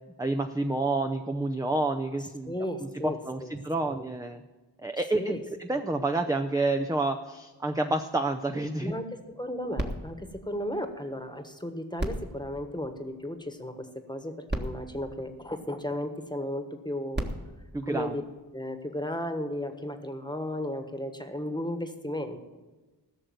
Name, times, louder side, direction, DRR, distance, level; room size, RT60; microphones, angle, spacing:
voice 1, 0.2-2.5 3.0-4.4 4.8-8.9 17.7-18.2, right 2 dB, 10° right, 5 dB, 0.6 m, -29 dB
voice 2, 2.4-3.5 3.8-4.0 5.1-5.4 8.8-17.3 17.9-18.2 18.5-22.4, left 1 dB, 10° left, 7 dB, 1.4 m, -34 dB
sound 1, 9.7-11.4 11.9-13.5 14.2-14.3 14.5-16.1 16.9-18.7 19.4-19.5, right 1 dB, 25° right, 1.6 m, -38 dB
15.5 x 6.5 x 7.8 m, 1.2 s
wide cardioid pair, 60°, 41 cm